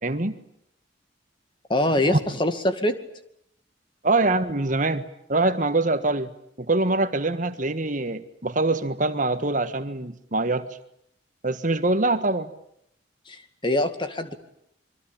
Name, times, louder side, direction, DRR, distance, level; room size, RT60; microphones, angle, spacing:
voice 1, 0.0-0.3 2.1-2.2 4.0-5.0 5.3-6.3 6.6-10.7 11.4-12.5, right 2 dB, 45° right, 10 dB, 1.5 m, -24 dB
voice 2, 1.7-3.0 13.3-14.4, left 1 dB, 25° left, 9 dB, 2.2 m, -24 dB
26.5 x 24.0 x 8.9 m, 0.74 s
head